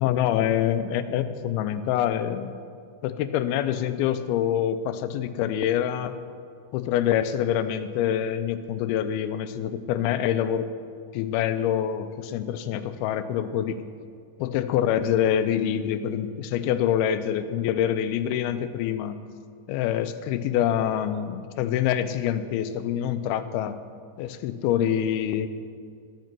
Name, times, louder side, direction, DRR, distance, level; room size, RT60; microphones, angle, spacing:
voice 1, 0.0-2.5 3.0-6.1 6.7-10.7 11.1-13.8 14.4-19.2 19.7-23.8 24.2-25.5, left 10 dB, 85° left, 11 dB, 2.5 m, -26 dB
13.5 x 9.3 x 6.0 m, 2.2 s
omnidirectional pair, 4.4 m